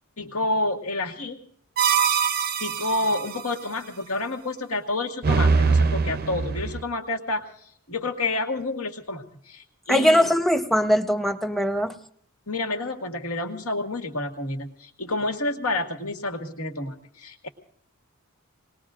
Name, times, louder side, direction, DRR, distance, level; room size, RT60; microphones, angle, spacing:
voice 1, 0.2-1.4 2.6-7.4 7.9-10.3 12.5-17.5, left 2 dB, 80° left, 3 dB, 1.9 m, -29 dB
sound 1, 1.8-3.4 5.2-6.8, right 5 dB, 45° right, 0.5 m, -22 dB
voice 2, 9.9-12.0, equal, ahead, 6 dB, 0.8 m, -21 dB
28.0 x 20.5 x 2.5 m, 0.63 s
head